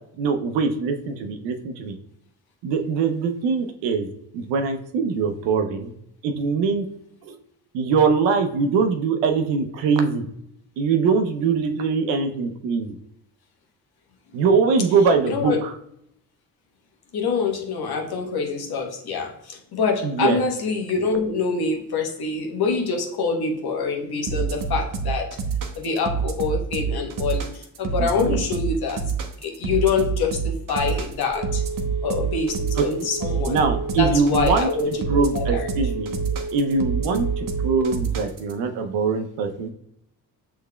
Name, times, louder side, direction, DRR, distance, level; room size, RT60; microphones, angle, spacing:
voice 1, 0.2-1.9 2.6-4.1 4.3-5.9 6.2-6.9 7.2-7.3 7.7-10.2 10.8-12.9 14.3-15.7 20.0-20.4 28.0-28.4 32.8-32.9 33.5-34.7 35.1-36.2 36.5-39.7, right 5 dB, 80° right, 6 dB, 0.7 m, -22 dB
voice 2, 15.3-15.6 17.1-25.4 25.8-29.0 29.4-31.6 32.0-33.6 34.0-35.7, left 5 dB, 60° left, 2 dB, 1.2 m, -25 dB
sound 1, 24.3-38.5, right 6 dB, 50° right, 1.0 m, -27 dB
Telephone, 30.8-38.1, right 2 dB, 5° right, 1.7 m, -33 dB
6.5 x 3.5 x 2.3 m, 0.73 s
hypercardioid pair, 50°, 43 cm